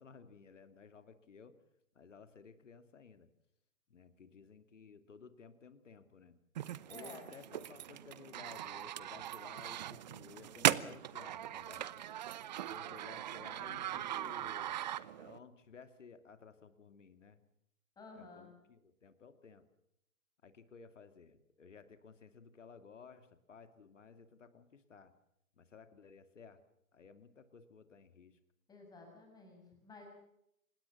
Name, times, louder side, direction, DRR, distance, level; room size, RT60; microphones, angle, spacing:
voice 1, 0.0-1.6 1.9-3.3 3.9-6.4 6.9-11.9 12.7-14.7 15.2-17.4 18.1-19.7 20.4-25.1 25.6-26.6 26.9-28.4, left 5 dB, 60° left, 10 dB, 2.5 m, -56 dB
sound 1, 6.5-15.4, right 12 dB, 30° right, 0.9 m, -39 dB
voice 2, 6.9-7.3 18.0-18.5 28.7-30.1, left 3 dB, 10° left, 2 dB, 6.2 m, -53 dB
26.5 x 20.0 x 7.2 m, 0.78 s
figure-of-eight pair, 135°, 41 cm